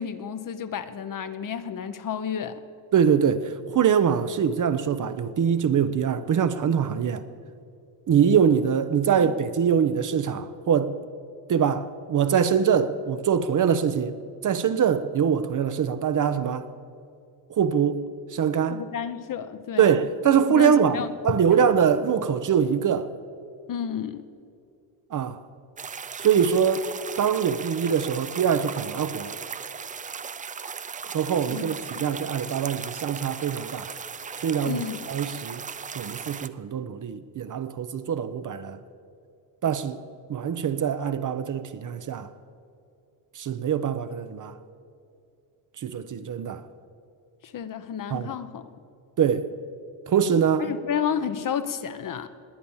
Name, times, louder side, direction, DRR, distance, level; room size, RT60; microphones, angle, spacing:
voice 1, 0.0-2.6 9.1-9.3 18.7-20.0 20.5-21.1 21.6-21.7 23.7-24.2 31.5-32.1 34.6-35.1 47.4-48.7 50.6-52.3, left 8 dB, 45° left, 1.0 m, -31 dB
voice 2, 2.9-7.2 8.1-11.0 11.5-14.2 14.4-16.7 17.5-18.0 18.3-18.8 19.8-23.1 25.1-25.4 26.2-26.9 27.2-29.3 31.1-33.9 34.4-34.8 35.1-35.6 35.9-38.8 39.6-40.0 40.3-42.3 43.4-44.5 45.8-46.6 48.1-48.3 49.2-49.5 50.1-50.7, right 7 dB, 45° right, 0.8 m, -23 dB
sound 1, 25.8-36.5, right 6 dB, 20° right, 0.4 m, -37 dB
20.0 x 8.7 x 7.2 m
cardioid pair, 95°, 45 cm